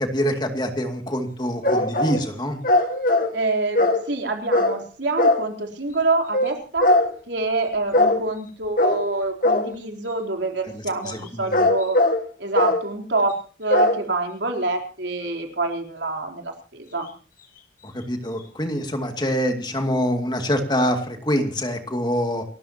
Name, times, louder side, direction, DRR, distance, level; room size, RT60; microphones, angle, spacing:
voice 1, 0.0-2.6 10.7-11.7 17.8-22.4, equal, 25° left, 5 dB, 2.3 m, -25 dB
sound 1, 1.6-2.2 2.6-3.4 3.8-4.1 4.5-4.8 5.2-5.4 6.3-6.5 6.8-7.1 7.9-8.2 8.8-9.1 9.4-9.8 11.3-12.2 12.6-12.8 13.7-14.0, left 2 dB, 50° left, 2.3 m, -19 dB
voice 2, 3.3-6.9 7.3-12.0 12.4-17.1, right 3 dB, 85° right, 3 dB, 3.8 m, -26 dB
29.0 x 13.0 x 2.9 m, 0.40 s
head